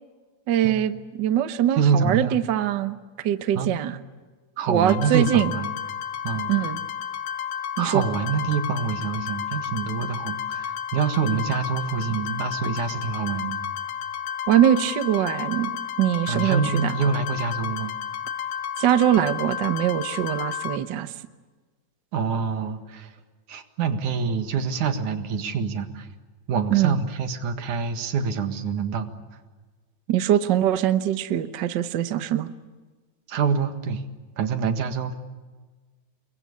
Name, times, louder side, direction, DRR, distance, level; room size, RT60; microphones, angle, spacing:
voice 1, 0.5-3.0 3.2-4.0 4.7-5.5 6.5-6.8 7.8-8.0 14.5-15.7 16.0-17.0 18.8-21.1 26.7-27.0 30.1-32.5, right 11 dB, 60° right, 11 dB, 1.1 m, -22 dB
voice 2, 1.8-2.4 3.6-3.7 4.6-5.7 6.2-6.5 7.8-13.6 16.3-17.9 22.1-23.1 23.5-26.1 26.5-29.1 33.3-34.0 34.4-35.1, right 6 dB, 80° right, 8 dB, 3.2 m, -26 dB
sound 1, 4.9-20.8, left 8 dB, 65° left, 2.1 m, -32 dB
29.0 x 23.0 x 8.4 m, 1.3 s
omnidirectional pair, 3.5 m